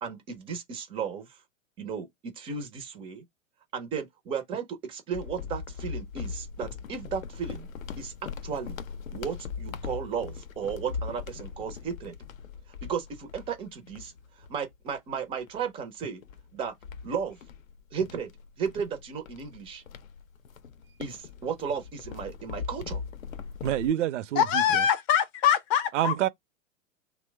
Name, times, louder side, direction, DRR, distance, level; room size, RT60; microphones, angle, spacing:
voice 1, 0.0-1.4 1.8-3.2 3.7-7.7 8.0-8.8 9.1-12.1 12.8-14.1 14.5-16.2 16.5-16.7 17.0-17.4 17.9-18.3 18.6-19.8 21.0-23.0, right 6 dB, 15° right, 0.3 m, -34 dB
sound 1, 5.1-15.0 15.5-15.6 16.2-23.9, left 6 dB, 85° left, 0.6 m, -40 dB
voice 2, 23.6-24.9 25.9-26.3, right 12 dB, 65° right, 0.5 m, -27 dB
voice 3, 24.4-26.1, left 9 dB, 35° left, 0.5 m, -23 dB
3.0 x 2.0 x 3.2 m
hypercardioid pair, 105°, 39 cm